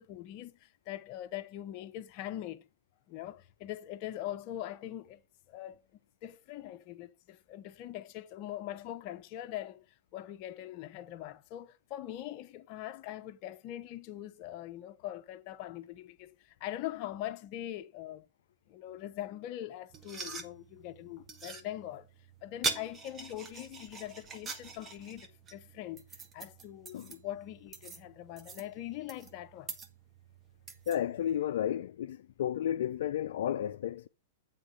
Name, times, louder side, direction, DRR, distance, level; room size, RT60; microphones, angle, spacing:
voice 1, 0.0-2.7 3.1-5.2 5.5-5.8 6.2-9.9 10.1-18.3 18.7-22.1 22.4-26.1 26.3-29.7, left 13 dB, 45° left, 0.7 m, -42 dB
sound 1, 19.9-31.4, right 4 dB, 25° right, 1.2 m, -43 dB
voice 2, 30.9-34.1, left 10 dB, 70° left, 0.3 m, -32 dB
7.9 x 3.7 x 6.3 m
hypercardioid pair, 120°, 0 cm